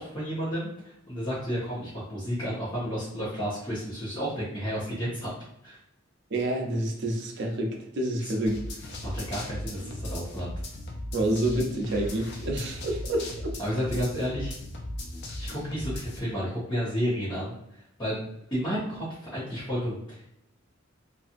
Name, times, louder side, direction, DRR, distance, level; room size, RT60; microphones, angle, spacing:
voice 1, 0.0-5.3 5.6-5.8 8.2-8.3 9.0-10.5 13.6-14.5 15.4-17.5 18.0-18.2 18.5-19.0 19.3-20.3, equal, 25° left, -13 dB, 1.0 m, -31 dB
voice 2, 6.3-8.6 11.1-13.5, right 1 dB, 60° right, 1 dB, 0.6 m, -28 dB
sound 1, 8.5-16.2, left 1 dB, 55° left, 0.5 m, -37 dB
2.8 x 2.5 x 2.5 m, 0.79 s
head